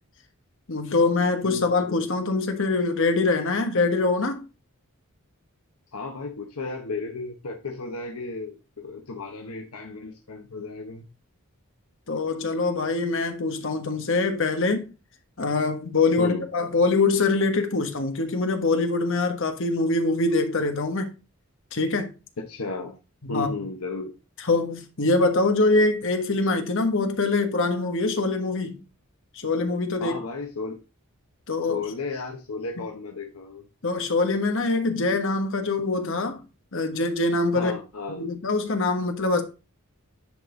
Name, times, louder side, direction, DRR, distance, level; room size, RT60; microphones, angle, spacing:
voice 1, 0.7-4.4 12.1-14.9 15.4-21.1 21.7-22.1 23.2-23.5 24.5-28.8 29.3-30.2 31.5-31.8 33.8-36.4 36.7-37.7 38.2-39.4, left 3 dB, 60° left, 1.3 m, -24 dB
voice 2, 1.4-2.1 5.9-11.1 16.2-16.5 22.4-23.0 23.3-24.1 30.0-30.8 31.6-33.6 37.5-38.3, left 3 dB, 85° left, 1.0 m, -34 dB
10.0 x 4.1 x 3.8 m
head